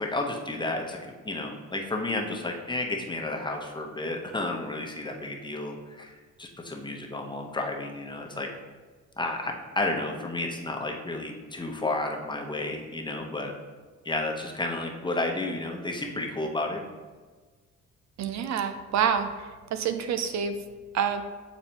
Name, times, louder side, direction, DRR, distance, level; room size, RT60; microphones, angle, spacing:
voice 1, 0.0-8.5 9.2-13.5 14.0-16.8, left 2 dB, 15° left, 1 dB, 0.9 m, -32 dB
voice 2, 18.2-19.3 19.7-20.5 20.9-21.2, right 7 dB, 65° right, 9 dB, 0.5 m, -27 dB
8.7 x 3.9 x 2.9 m, 1.4 s
cardioid pair, 90°, 30 cm